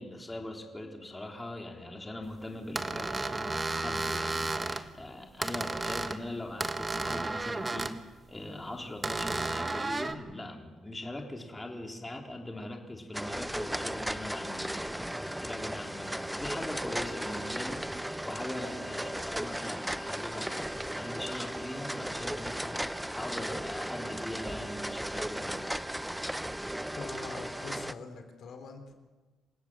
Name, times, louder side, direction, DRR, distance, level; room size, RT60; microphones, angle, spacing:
voice 1, 0.0-25.7, left 1 dB, 15° left, 2 dB, 3.6 m, -41 dB
sound 1, 2.8-4.8 5.4-6.2 6.6-8.0 9.0-10.1, right 3 dB, 25° right, 1.6 m, -33 dB
sound 2, 13.1-27.9, right 1 dB, 5° right, 0.8 m, -36 dB
voice 2, 27.0-28.9, left 4 dB, 65° left, 6 dB, 3.6 m, -43 dB
27.5 x 16.5 x 7.6 m, 1.3 s
cardioid pair, 90°, 0 cm